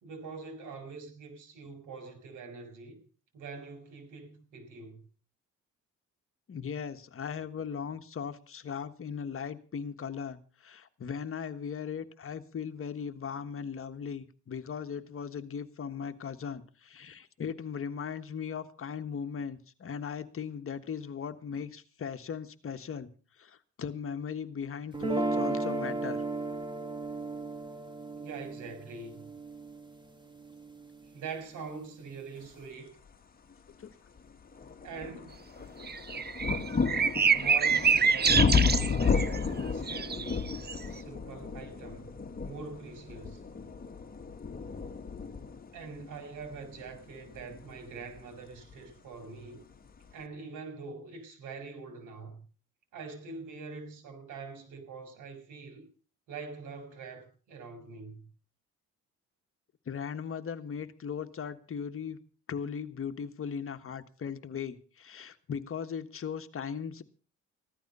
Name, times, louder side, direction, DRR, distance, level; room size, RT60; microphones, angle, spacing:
voice 1, 0.0-3.0 3.3-5.0 28.2-29.3 31.1-33.0 34.8-35.7 37.3-40.4 40.9-42.1 42.4-43.4 45.7-49.6 50.1-52.5 52.9-55.8 56.3-58.2, right 4 dB, 85° right, 4.4 m, -44 dB
voice 2, 6.5-23.1 23.4-26.2 33.8-33.9 59.9-62.2 62.5-67.0, left 7 dB, 45° left, 1.5 m, -38 dB
sound 1, 24.9-31.0, right 2 dB, 15° right, 2.3 m, -35 dB
sound 2, 33.5-33.6 34.2-48.9 49.8-49.9, left 5 dB, 30° left, 1.7 m, -32 dB
sound 3, 35.9-39.5 39.9-40.8, right 6 dB, 35° right, 0.9 m, -26 dB
15.5 x 12.5 x 5.5 m
cardioid pair, 90°, 30 cm